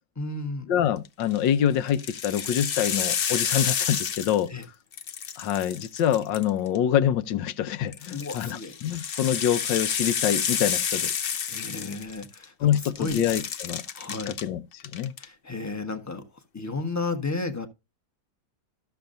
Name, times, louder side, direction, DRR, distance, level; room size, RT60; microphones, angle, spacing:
voice 1, 0.2-0.7 4.5-4.6 8.1-8.7 11.5-13.2 13.9-14.3 15.2-16.2 16.5-17.7, left 3 dB, 10° left, 0.9 m, -33 dB
voice 2, 0.7-4.5 5.4-11.1 12.6-13.8 14.3-15.1, left 10 dB, 85° left, 1.5 m, -26 dB
sound 1, 1.0-1.4 1.9-4.6 4.9-6.8 7.9-12.4 12.7-14.4 14.8-15.2, left 7 dB, 60° left, 0.5 m, -30 dB
13.0 x 7.0 x 2.6 m
omnidirectional pair, 1.9 m